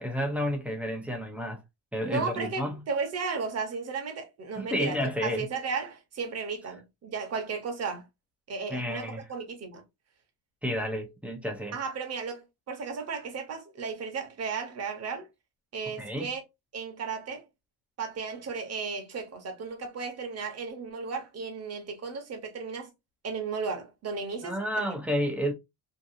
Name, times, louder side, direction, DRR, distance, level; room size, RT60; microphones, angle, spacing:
voice 1, 0.0-1.6 1.9-2.8 4.6-5.5 8.7-9.2 10.6-11.8 16.0-16.3 24.4-25.5, equal, 5° right, 0.3 m, -31 dB
voice 2, 2.0-8.1 8.5-9.8 11.7-15.3 15.7-16.4 16.7-17.4 18.0-22.9 23.2-25.0, right 5 dB, 35° right, 0.7 m, -34 dB
2.7 x 2.3 x 2.4 m
cardioid pair, 165°, 44 cm